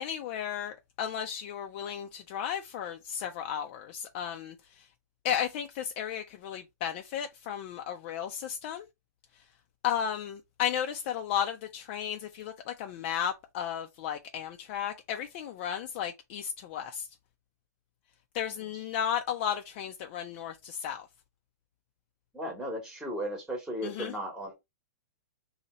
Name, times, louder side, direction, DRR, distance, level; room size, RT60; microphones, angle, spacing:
voice 1, 0.0-4.5 5.2-8.9 9.8-17.1 18.3-21.1 23.8-24.1, left 9 dB, 40° left, 0.5 m, -34 dB
voice 2, 22.3-24.5, equal, 5° right, 1.1 m, -36 dB
2.8 x 2.8 x 4.2 m
hypercardioid pair, 145°, 9 cm